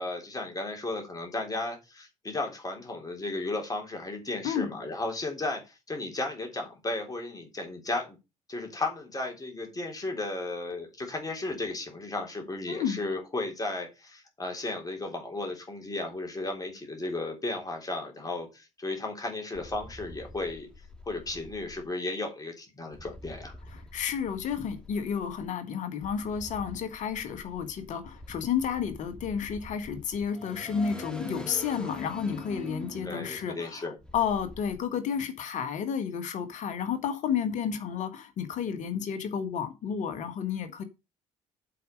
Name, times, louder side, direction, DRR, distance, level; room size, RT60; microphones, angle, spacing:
voice 1, 0.0-8.2 8.5-20.7 21.1-23.5 33.0-34.0, left 2 dB, 20° left, 3.5 m, -34 dB
sound 1, 19.5-21.8 22.9-25.5 26.0-34.8, equal, 5° left, 2.6 m, -45 dB
voice 2, 23.7-40.8, left 7 dB, 50° left, 1.6 m, -31 dB
7.7 x 5.1 x 6.6 m
figure-of-eight pair, 50°, 16 cm